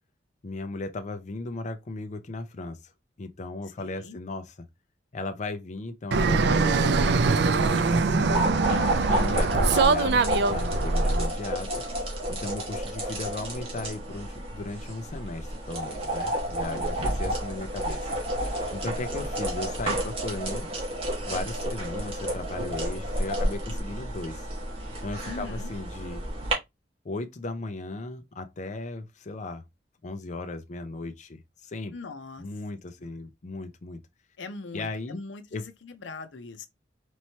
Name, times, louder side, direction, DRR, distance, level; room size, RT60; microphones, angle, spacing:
voice 1, 0.4-2.9 3.2-4.7 5.1-8.5 9.1-11.7 12.3-18.1 18.7-20.7 21.3-24.5 25.0-26.2 27.0-29.6 30.0-31.9 32.4-34.0 34.7-35.2 35.5-35.6, left 2 dB, 40° left, 0.5 m, -36 dB
voice 2, 3.8-4.2 9.0-9.4 16.6-17.0 25.2-25.7 31.9-32.4 34.4-36.7, left 3 dB, 85° left, 0.6 m, -41 dB
Fixed-wing aircraft airplane, 6.1-11.3, right 4 dB, 65° right, 0.4 m, -23 dB
sound 1, 7.6-26.5, right 1 dB, 35° right, 1.5 m, -30 dB
4.3 x 3.1 x 2.8 m
head